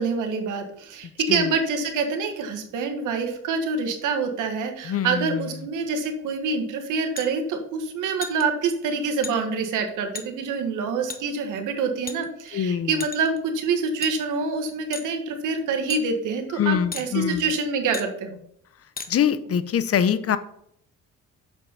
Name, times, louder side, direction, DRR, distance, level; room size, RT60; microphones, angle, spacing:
voice 1, 0.0-18.4, right 4 dB, 85° right, 5 dB, 1.6 m, -26 dB
voice 2, 4.9-5.4 12.5-12.9 16.6-17.5 19.1-20.4, left 8 dB, 50° left, 13 dB, 0.7 m, -24 dB
sound 1, 7.2-7.3 8.2-8.4 9.2-9.4 10.2-10.3 11.1-11.2 12.1-12.5 13.0-13.4 14.0-14.1 14.9-15.1 15.9-16.0 16.9-17.1 17.9-18.1 19.0-19.1, left 5 dB, 30° left, 1.1 m, -34 dB
7.1 x 5.4 x 5.7 m, 0.72 s
cardioid pair, 90°, 30 cm